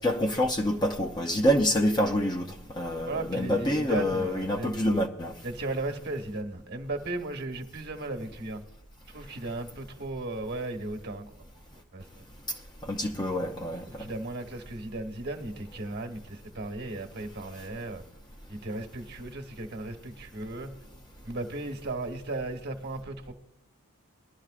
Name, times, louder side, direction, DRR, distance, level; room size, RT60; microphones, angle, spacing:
voice 1, 0.0-2.5 2.8-5.3 12.9-13.8, equal, 20° left, 0.6 m, -26 dB
voice 2, 3.0-4.7 5.4-8.6 9.1-11.4 11.9-12.3 13.9-18.0 18.5-20.7 21.2-23.3, right 2 dB, 50° right, 1.2 m, -36 dB
20.0 x 12.0 x 2.5 m
head